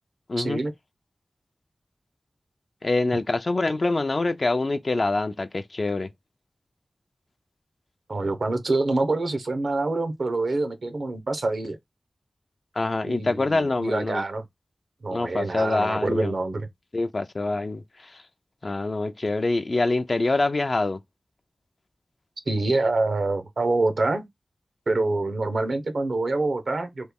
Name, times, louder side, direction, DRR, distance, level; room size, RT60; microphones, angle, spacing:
voice 1, 0.4-0.7 8.1-11.8 13.1-14.4 15.0-16.7 22.5-24.3 24.9-27.1, right 2 dB, 70° right, 0.7 m, -26 dB
voice 2, 2.8-6.1 12.8-14.2 15.1-16.3 16.9-18.2 18.6-21.0, left 2 dB, 50° left, 0.3 m, -25 dB
3.1 x 2.2 x 3.4 m
wide cardioid pair, 60°, 0 cm